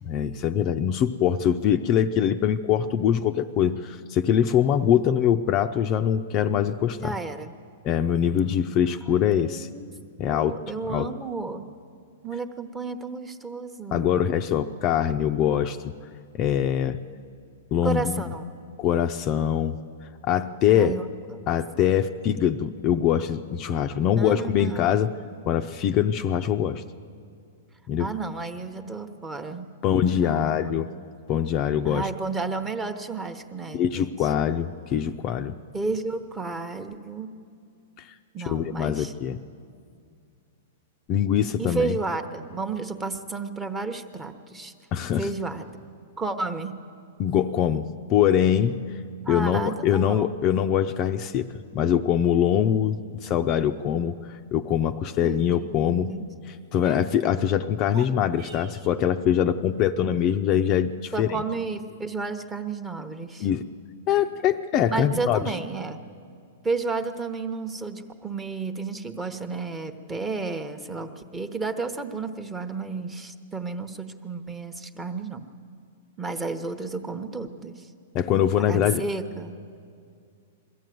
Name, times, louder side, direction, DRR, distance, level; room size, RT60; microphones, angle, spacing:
voice 1, 0.0-7.2 7.8-9.7 10.2-10.5 10.9-11.1 13.9-15.9 16.3-17.0 17.7-18.3 18.8-19.8 20.2-21.0 21.5-25.1 25.5-26.8 27.9-28.1 29.8-30.9 31.3-32.1 33.7-35.6 38.0-38.1 38.5-39.4 41.1-42.0 44.9-45.3 47.2-48.8 49.3-51.5 51.7-56.1 56.7-61.3 63.4-63.6 64.1-65.4 78.1-79.0, left 9 dB, 30° left, 7 dB, 0.5 m, -23 dB
voice 2, 7.0-7.5 9.0-9.9 10.2-11.7 12.2-14.1 17.8-18.5 20.7-21.6 24.2-24.9 25.3-25.4 28.0-29.7 30.2-30.6 31.8-34.3 35.7-37.4 38.3-39.1 41.6-44.7 45.2-45.9 46.2-46.8 49.2-50.2 55.2-56.3 56.8-57.0 61.1-63.5 64.9-66.0 66.6-75.4 76.2-77.9 78.6-79.6, right 4 dB, 10° right, 7 dB, 1.0 m, -32 dB
sound 1, 57.8-59.0, right 4 dB, 35° right, 1.3 m, -44 dB
22.0 x 14.5 x 9.3 m, 2.4 s
hypercardioid pair, 150°, 0 cm